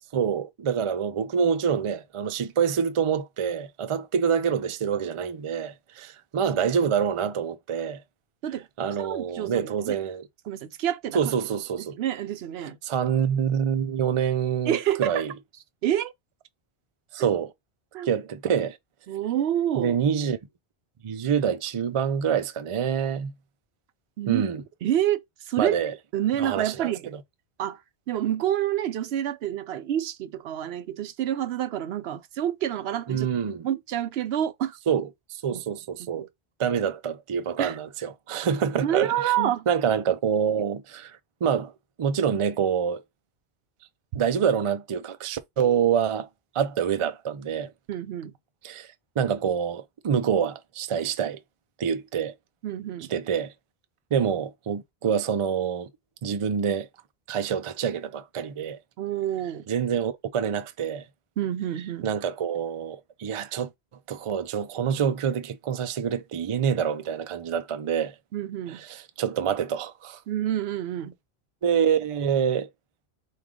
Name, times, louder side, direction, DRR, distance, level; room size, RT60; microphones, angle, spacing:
voice 1, 0.1-8.0 8.8-10.3 11.1-12.0 12.8-15.3 17.1-17.5 18.0-18.8 19.8-20.4 21.0-23.3 24.3-24.6 25.6-25.9 26.4-27.2 33.1-33.7 34.9-36.3 36.6-41.7 42.0-43.0 44.1-46.3 46.5-47.7 48.6-51.4 51.8-52.3 53.1-53.5 54.1-55.9 56.2-56.9 57.3-58.8 59.7-61.0 62.0-63.7 64.1-68.1 68.7-70.2 71.6-72.7, right 7 dB, 50° right, 0.3 m, -26 dB
voice 2, 9.0-10.0 10.5-11.2 12.0-12.8 14.7-15.3 15.8-16.1 17.2-17.3 17.9-18.1 19.1-20.0 24.2-24.4 24.8-25.2 25.5-25.8 26.1-27.1 27.6-27.8 28.1-33.3 33.6-34.8 35.5-35.6 36.1-36.2 37.6-37.8 38.8-39.7 47.9-48.3 52.6-53.1 59.0-59.7 61.4-62.1 68.3-68.8 70.3-71.1, right 11 dB, 75° right, 0.8 m, -28 dB
4.7 x 2.4 x 3.6 m
omnidirectional pair, 1.1 m